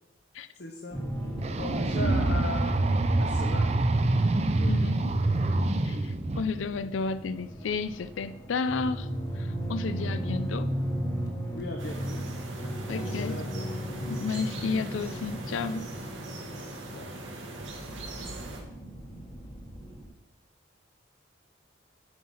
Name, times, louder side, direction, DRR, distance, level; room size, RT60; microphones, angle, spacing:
voice 1, 0.6-1.0 1.6-2.8 3.2-3.7 4.6-4.8 5.9-6.3 11.5-12.3 12.9-13.7 16.9-17.1, left 2 dB, 55° left, 2 dB, 0.8 m, -38 dB
sound 1, 0.9-20.1, equal, 20° left, 1.2 m, -36 dB
sound 2, 1.4-6.4, right 2 dB, 35° right, 0.5 m, -26 dB
voice 2, 4.7-5.1 5.8-9.1 9.4-10.7 12.9-13.4 14.1-15.9, left 4 dB, 85° left, 13 dB, 0.4 m, -32 dB
sound 3, 11.8-18.6, right 2 dB, 85° right, 1.8 m, -42 dB
9.4 x 4.8 x 5.7 m, 0.91 s
head